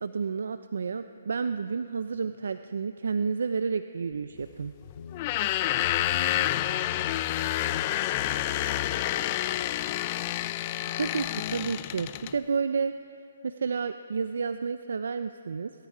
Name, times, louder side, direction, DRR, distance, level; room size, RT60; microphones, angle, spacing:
voice 1, 0.0-4.7 10.9-12.9 13.4-15.7, right 5 dB, 75° right, 10 dB, 0.5 m, -30 dB
sound 1, 4.1-11.5, left 8 dB, 50° left, 0.8 m, -47 dB
sound 2, 5.1-12.4, left 14 dB, 25° left, 0.4 m, -29 dB
voice 2, 5.1-10.0, right 3 dB, 45° right, -1 dB, 5.0 m, -53 dB
22.0 x 13.0 x 5.0 m, 2.5 s
hypercardioid pair, 165°, 0 cm